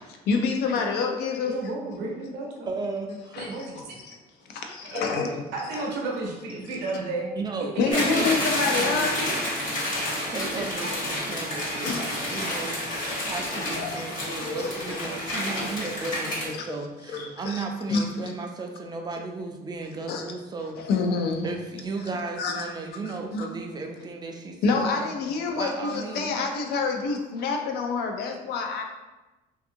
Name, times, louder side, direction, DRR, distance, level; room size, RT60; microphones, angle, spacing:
voice 1, 0.3-1.5 3.3-3.7 4.1-4.2 4.5-5.4 5.7-5.8 6.7-6.8 7.8-9.2 10.0-10.1 10.9-11.0 11.8-12.5 12.9-13.0 13.7-15.1 16.7-16.8 17.1-18.3 20.1-20.3 20.8-21.5 22.4-22.7 23.1-23.4 24.6-28.8, left 4 dB, 75° left, 3 dB, 0.5 m, -28 dB
voice 2, 1.5-2.7 3.4-3.9 4.9-5.2 5.5-7.3 8.7-9.0 10.2-10.3 10.8-11.8, right 3 dB, 85° right, -2 dB, 0.6 m, -34 dB
voice 3, 2.7-3.4 4.5-4.6 7.4-9.4 10.3-12.8 13.2-20.8 21.4-25.1 25.6-26.2, right 3 dB, 25° right, 3 dB, 0.3 m, -35 dB
sound 1, 7.9-16.5, left 1 dB, 50° left, 1.1 m, -29 dB
2.7 x 2.3 x 2.6 m, 1.1 s
cardioid pair, 110°, 17 cm